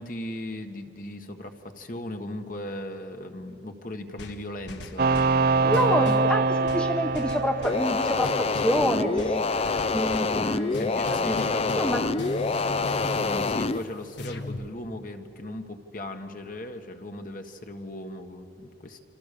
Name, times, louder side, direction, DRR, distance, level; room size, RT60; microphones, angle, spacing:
voice 1, 0.0-5.1 5.6-6.1 10.7-11.9 13.1-19.0, left 1 dB, 50° left, 5 dB, 1.6 m, -37 dB
sound 1, 4.2-5.4 5.7-6.3 6.7-7.9 8.2-8.8 9.2-10.4 10.7-14.7, left 1 dB, 80° left, 1.5 m, -39 dB
sound 2, 5.0-8.7, right 3 dB, 55° right, 0.6 m, -24 dB
voice 2, 5.6-11.4 11.8-12.1, equal, 5° left, 5 dB, 0.9 m, -28 dB
sound 3, 7.6-13.8, left 3 dB, 35° left, 0.5 m, -26 dB
28.0 x 26.5 x 6.9 m, 2.7 s
head